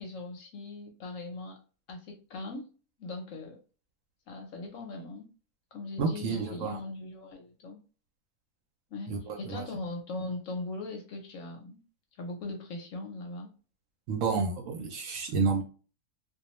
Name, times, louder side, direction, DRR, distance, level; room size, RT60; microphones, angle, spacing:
voice 1, 0.0-1.6 1.9-2.7 3.0-3.6 4.3-5.3 5.7-7.8 8.9-11.8 12.2-13.5, left 2 dB, 65° left, 2 dB, 0.9 m, -40 dB
voice 2, 6.0-6.8 9.1-9.2 9.5-9.6 14.1-15.6, right 4 dB, 70° right, 3 dB, 0.8 m, -29 dB
2.4 x 2.2 x 2.9 m, 0.36 s
omnidirectional pair, 1.7 m